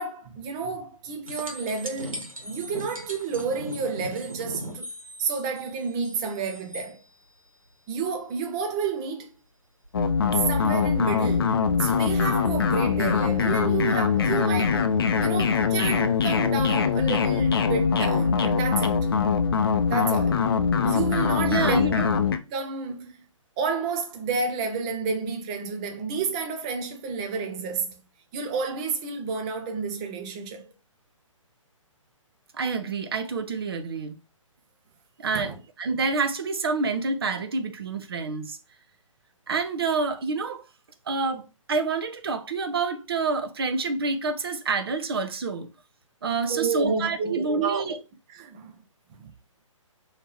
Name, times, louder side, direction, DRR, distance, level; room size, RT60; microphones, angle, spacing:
voice 1, 0.0-4.9 5.2-7.0 7.9-9.3 10.5-14.8 15.2-19.1 19.9-20.5 20.8-22.0 22.5-23.1 23.6-28.0 28.3-30.7 35.3-35.5 46.5-47.8 48.3-48.7 49.2-49.3, right 5 dB, 10° right, 0.3 m, -30 dB
sound 1, 1.2-6.9 9.8-9.9, equal, 80° right, 1.3 m, -39 dB
sound 2, 9.9-22.4, left 6 dB, 45° left, 0.5 m, -23 dB
voice 2, 21.4-22.1 32.5-34.2 35.2-35.5 35.8-38.6 39.5-40.6 41.1-45.7 46.2-48.0, right 4 dB, 45° right, 0.6 m, -27 dB
3.4 x 2.9 x 4.3 m
figure-of-eight pair, 135°, 17 cm